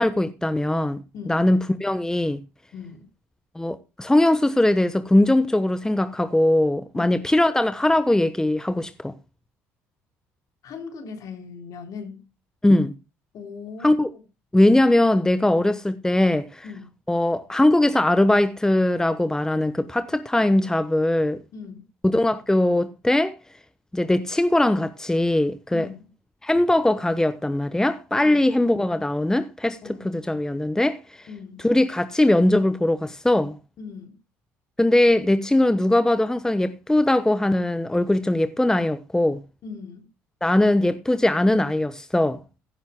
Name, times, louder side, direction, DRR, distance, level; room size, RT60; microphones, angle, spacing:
voice 1, 0.0-1.0 1.3-2.4 3.5-9.1 12.6-12.9 13.8-14.1 14.5-16.6 17.1-21.4 22.1-23.4 23.9-25.9 26.4-31.3 31.6-33.6 34.8-39.4 40.4-42.4, left 1 dB, 10° left, 1.0 m, -20 dB
voice 2, 1.1-1.5 2.7-3.1 6.9-7.2 10.6-12.2 13.3-14.2 16.6-16.9 21.5-21.9 25.7-26.1 28.2-28.5 29.8-30.1 31.3-31.7 33.8-34.2 39.6-40.1, left 5 dB, 60° left, 3.7 m, -39 dB
16.5 x 10.5 x 2.2 m
hypercardioid pair, 60°, 7 cm